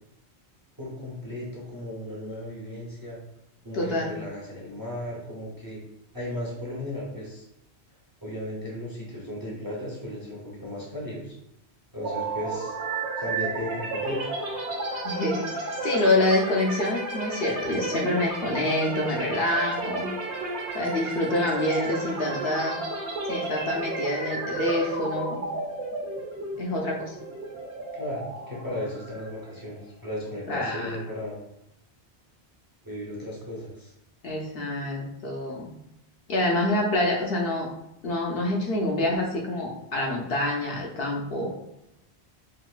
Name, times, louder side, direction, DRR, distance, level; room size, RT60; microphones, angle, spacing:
voice 1, 0.8-3.2 3.6-5.8 6.1-7.5 8.2-11.3 11.9-12.8 13.2-14.2 27.9-31.4 32.8-33.9, left 1 dB, 25° right, -4 dB, 0.6 m, -35 dB
voice 2, 3.7-4.1 15.0-20.1 20.7-22.8 23.3-25.4 26.6-27.1 30.5-31.0 34.2-35.7 36.3-37.7 38.0-41.5, left 1 dB, 65° left, -1 dB, 0.7 m, -26 dB
sound 1, 12.0-29.8, right 2 dB, 85° right, 1.0 m, -33 dB
3.7 x 2.5 x 2.3 m, 0.85 s
omnidirectional pair, 1.1 m